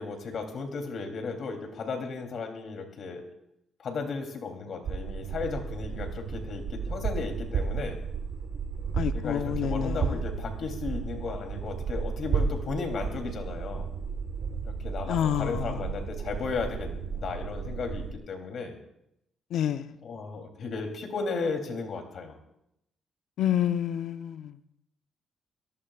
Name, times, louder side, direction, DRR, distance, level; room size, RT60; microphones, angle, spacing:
voice 1, 0.0-3.2 3.8-8.0 9.1-13.9 14.6-18.8 20.0-22.3, left 4 dB, 60° left, 3 dB, 3.2 m, -35 dB
sound 1, 4.8-18.1, right 5 dB, 65° right, 1.5 m, -33 dB
voice 2, 8.9-10.2 15.1-15.8 19.5-20.0 23.4-24.6, left 10 dB, 75° left, 10 dB, 0.8 m, -29 dB
27.0 x 18.0 x 2.5 m, 0.81 s
cardioid pair, 90°, 0 cm